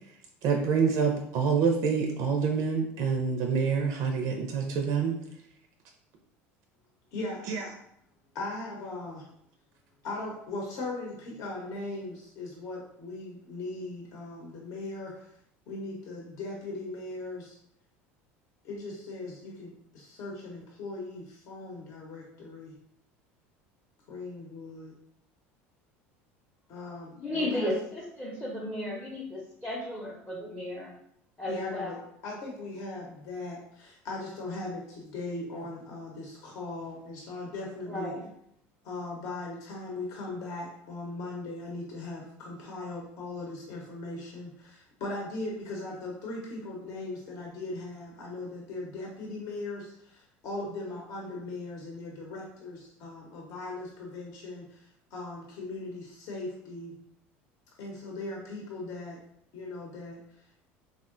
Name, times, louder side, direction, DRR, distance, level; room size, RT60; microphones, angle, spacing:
voice 1, 0.4-5.1 7.5-7.6, right 6 dB, 60° right, 2 dB, 0.4 m, -26 dB
voice 2, 7.1-7.5 8.3-9.3 10.0-15.3 15.7-17.6 18.6-22.7 24.1-24.9 26.7-27.7 31.5-38.1 38.8-57.0 57.8-59.2 59.5-60.6, left 2 dB, 60° left, -2 dB, 0.7 m, -39 dB
voice 3, 27.2-30.9 31.4-31.9 37.9-38.3, left 1 dB, 15° left, -3 dB, 0.6 m, -34 dB
3.5 x 2.1 x 2.4 m, 0.75 s
supercardioid pair, 90°, 7 cm